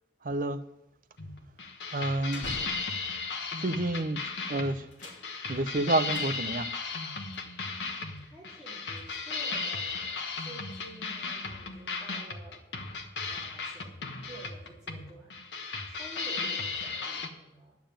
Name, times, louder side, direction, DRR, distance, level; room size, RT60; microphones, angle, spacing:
voice 1, 0.2-0.7 1.9-2.5 3.6-4.9 5.5-6.7, right 2 dB, 50° right, 0.7 m, -29 dB
sound 1, 0.6-3.4 4.1-4.4 4.7-6.8 7.3-7.4 8.1-9.6, left 1 dB, 45° left, 2.9 m, -47 dB
sound 2, 1.2-17.3, left 4 dB, 80° left, 1.3 m, -36 dB
voice 2, 8.2-12.6 13.3-14.0 14.2-15.3 15.8-17.8, right 1 dB, 5° right, 2.7 m, -50 dB
10.5 x 7.1 x 8.9 m
head